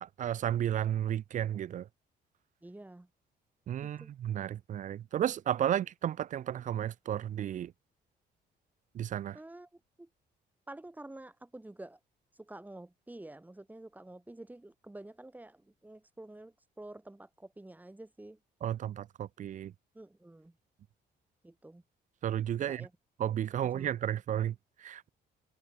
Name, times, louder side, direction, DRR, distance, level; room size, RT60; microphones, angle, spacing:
voice 1, 0.0-1.9 3.7-7.7 8.9-9.4 18.6-19.7 22.2-22.9 23.2-25.1, right 10 dB, 45° right, 0.5 m, -33 dB
voice 2, 2.6-3.1 3.8-4.1 9.3-9.7 10.0-10.1 10.7-12.0 12.4-18.4 19.9-20.5 21.4-21.8 22.6-22.9 23.6-24.0, right 1 dB, 10° right, 7.8 m, -49 dB
cardioid pair, 120°, 17 cm